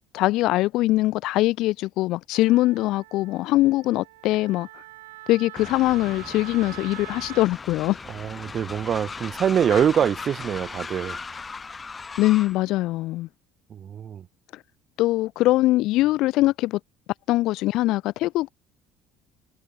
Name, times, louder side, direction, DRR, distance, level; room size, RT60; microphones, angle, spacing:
voice 1, 0.1-4.7 5.3-8.0 9.7-9.8 12.2-13.3 15.0-16.8 17.3-18.5, left 17 dB, 65° left, 1.1 m, -22 dB
Wind instrument woodwind instrument, 2.3-7.5, right 19 dB, 80° right, 4.7 m, -44 dB
Train, 5.6-12.6, left 4 dB, 25° left, 4.6 m, -38 dB
voice 2, 8.1-11.2 13.7-14.3, right 8 dB, 45° right, 5.9 m, -24 dB
hypercardioid pair, 65°, 0 cm